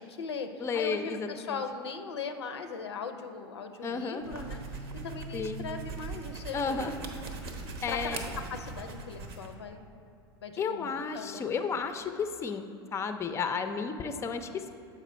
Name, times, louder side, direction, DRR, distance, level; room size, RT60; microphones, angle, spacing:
voice 1, 0.0-4.6 5.0-6.9 7.9-8.2 8.5-9.9 10.4-11.8, left 5 dB, 80° left, 8 dB, 0.5 m, -39 dB
voice 2, 0.6-1.6 3.8-4.2 5.3-5.6 6.5-6.9 7.8-8.3 10.6-12.7 12.9-14.7, left 5 dB, 20° left, 8 dB, 0.4 m, -32 dB
sound 1, 4.2-9.6, right 3 dB, 70° right, 0.9 m, -40 dB
7.3 x 5.1 x 4.2 m, 2.6 s
hypercardioid pair, 85°, 13 cm